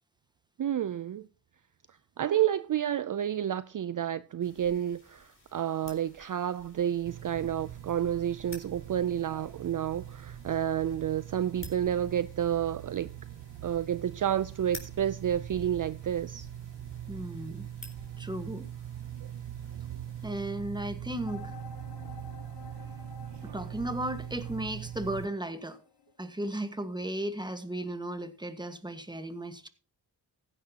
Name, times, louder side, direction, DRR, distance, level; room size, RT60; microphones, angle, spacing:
voice 1, 0.6-1.3 1.9-13.1 13.6-16.5, right 10 dB, 50° right, 0.5 m, -30 dB
sound 1, 4.4-20.3, left 2 dB, 30° left, 4.0 m, -53 dB
sound 2, 7.1-25.3, right 11 dB, 90° right, 0.7 m, -42 dB
voice 2, 17.1-17.7 18.2-18.7 20.2-21.6 23.4-25.8 26.2-29.7, right 1 dB, 10° right, 1.5 m, -35 dB
sound 3, 21.3-26.8, left 7 dB, 65° left, 1.1 m, -52 dB
15.5 x 10.0 x 2.9 m
cardioid pair, 60°, 41 cm